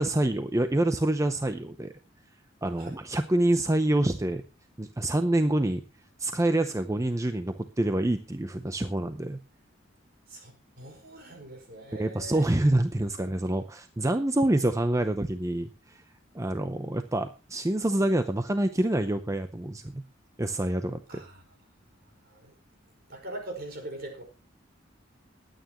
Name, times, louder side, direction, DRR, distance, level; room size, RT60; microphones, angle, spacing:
voice 1, 0.0-1.9 2.6-4.4 4.8-5.8 6.2-9.4 11.9-16.0 16.3-20.0 20.4-21.2, right 1 dB, 15° right, 9 dB, 0.6 m, -27 dB
voice 2, 10.3-12.4 21.1-21.4 22.2-22.5 23.1-24.2, right 1 dB, 55° right, 3 dB, 5.1 m, -42 dB
20.5 x 9.1 x 3.0 m, 0.31 s
head